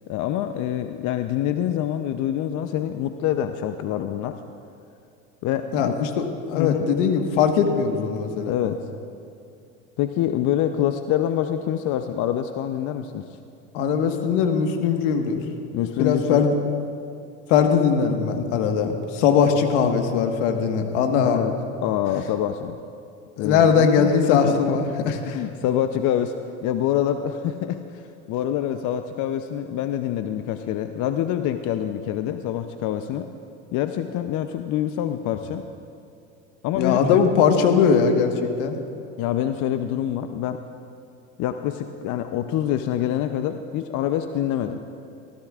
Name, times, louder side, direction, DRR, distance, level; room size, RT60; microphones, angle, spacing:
voice 1, 0.1-4.4 5.4-6.0 6.5-6.9 8.5-8.8 10.0-13.4 15.7-16.4 21.2-21.5 21.8-22.8 23.4-24.8 25.2-26.3 26.6-33.3 33.7-35.7 36.6-37.2 39.2-40.6 41.4-44.8, left 11 dB, 50° left, 8 dB, 0.7 m, -26 dB
voice 2, 5.7-8.5 13.7-15.4 16.0-16.5 17.5-21.4 23.4-25.4 36.7-38.3 38.6-38.8, left 6 dB, 75° left, 5 dB, 1.5 m, -20 dB
24.0 x 16.0 x 2.5 m, 2.6 s
hypercardioid pair, 85°, 37 cm